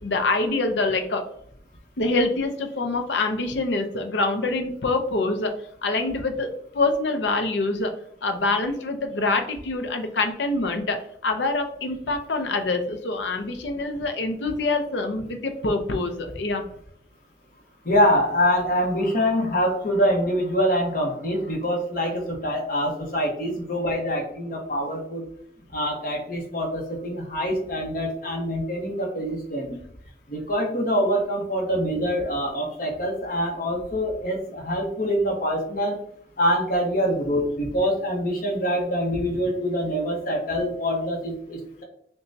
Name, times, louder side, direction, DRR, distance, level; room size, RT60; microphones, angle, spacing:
voice 1, 0.0-1.2 2.0-5.5 5.8-6.5 6.7-7.9 8.2-11.0 11.2-16.6, left 3 dB, 70° left, 5 dB, 0.6 m, -25 dB
voice 2, 17.8-25.2 25.7-29.8 30.3-36.0 36.4-41.8, equal, 50° left, 0 dB, 1.1 m, -25 dB
6.8 x 2.3 x 2.7 m, 0.67 s
head